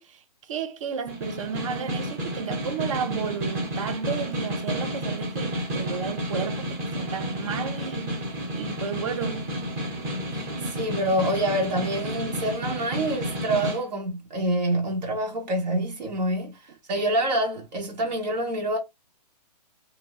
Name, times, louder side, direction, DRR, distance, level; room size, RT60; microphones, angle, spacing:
voice 1, 0.0-9.5, right 7 dB, 50° right, 0.4 m, -33 dB
Snare drum, 1.1-13.8, equal, 25° right, 0.9 m, -31 dB
voice 2, 10.3-16.6 16.9-18.8, right 1 dB, 80° right, 1.1 m, -26 dB
2.6 x 2.1 x 2.9 m
hypercardioid pair, 170°, 21 cm